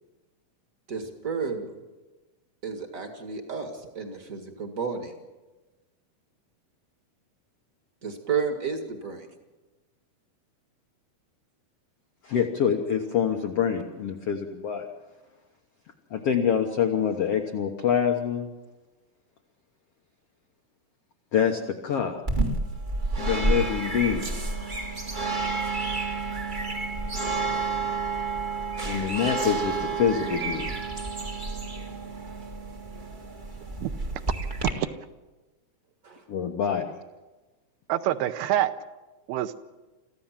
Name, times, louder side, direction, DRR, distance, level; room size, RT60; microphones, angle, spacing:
voice 1, 0.9-1.8 2.6-5.1 8.0-9.3 36.0-36.2, right 5 dB, 45° right, 5 dB, 1.1 m, -32 dB
voice 2, 12.2-14.9 16.1-18.5 21.3-22.2 23.2-24.2 28.8-30.7 36.3-36.9, left 7 dB, 90° left, 4 dB, 1.3 m, -26 dB
sound 1, 22.3-34.7, right 3 dB, 60° right, 0.5 m, -30 dB
voice 3, 33.8-34.2 34.8-34.9 37.9-38.7 39.3-39.6, right 13 dB, 80° right, 10 dB, 2.7 m, -26 dB
26.0 x 14.5 x 7.4 m, 1.2 s
omnidirectional pair, 4.5 m